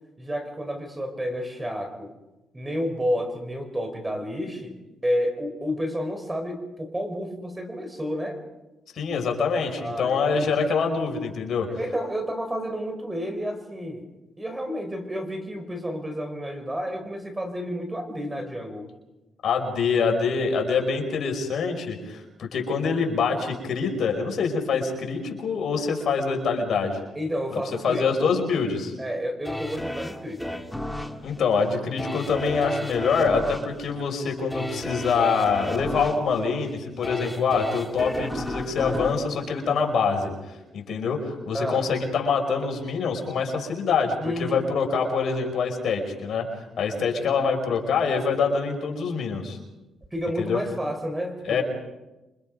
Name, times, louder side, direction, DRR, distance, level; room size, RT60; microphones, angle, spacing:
voice 1, 0.2-2.1 2.5-8.4 9.8-10.5 11.8-14.1 14.4-18.9 27.1-28.4 29.0-30.6 41.5-41.9 44.2-44.7 50.1-51.6, equal, 15° right, 6 dB, 4.7 m, -30 dB
voice 2, 8.9-11.7 19.4-27.0 27.5-28.9 31.2-40.3 40.7-46.5 46.8-49.6 50.4-50.6 51.5-51.6, left 5 dB, 60° left, 2 dB, 5.5 m, -25 dB
sound 1, 29.5-40.4 40.8-40.9, left 1 dB, 5° left, 2.1 m, -34 dB
28.0 x 25.5 x 5.4 m, 1.1 s
cardioid pair, 90°, 0 cm